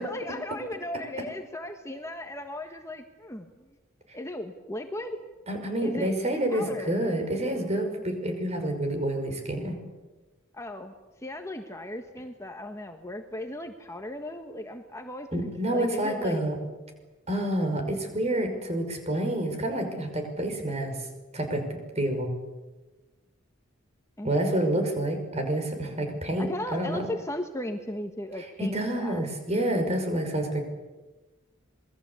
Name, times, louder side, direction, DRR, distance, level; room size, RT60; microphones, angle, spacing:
voice 1, 0.0-3.7 4.1-5.2 5.8-6.2 6.5-6.9 10.5-10.9 11.2-16.4 24.2-24.8 26.4-29.2, left 1 dB, 15° left, 5 dB, 1.5 m, -37 dB
voice 2, 5.5-9.8 15.3-16.6 17.3-21.0 21.3-22.3 24.2-27.1 28.6-30.6, right 1 dB, 35° right, 5 dB, 5.7 m, -28 dB
27.0 x 21.5 x 8.4 m, 1.2 s
head